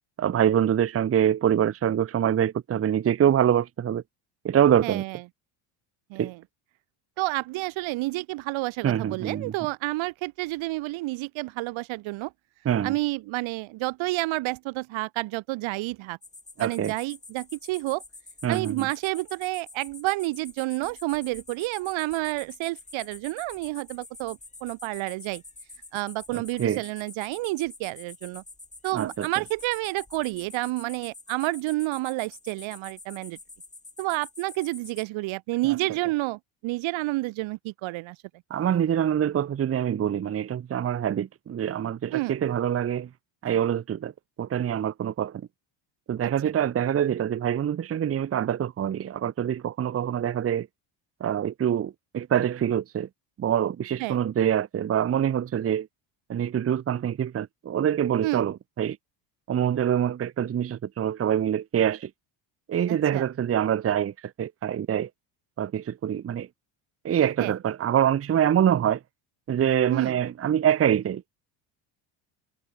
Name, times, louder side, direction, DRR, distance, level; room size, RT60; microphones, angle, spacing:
voice 1, 0.2-4.0 4.4-5.0 6.2-6.3 8.8-9.5 12.6-12.9 16.6-16.9 18.4-18.9 26.3-26.8 28.9-29.3 38.5-43.1 43.4-44.1 44.4-45.4 46.1-50.7 51.2-53.1 53.4-55.9 56.3-59.0 59.5-62.1 62.7-64.1 64.4-65.1 65.6-66.5 67.0-69.0 69.5-71.2, right 9 dB, 30° right, 0.8 m, -25 dB
voice 2, 4.8-5.2 6.1-6.4 7.2-12.3 12.8-16.2 16.6-18.0 18.5-25.4 25.9-28.4 28.8-33.4 34.0-38.2 42.1-42.4 54.0-54.2 58.2-58.5 62.9-63.2 67.4-67.5 69.9-70.2, right 21 dB, 70° right, 1.3 m, -30 dB
sound 1, 16.2-35.1, left 3 dB, 15° left, 5.5 m, -47 dB
supercardioid pair, 100°, 49 cm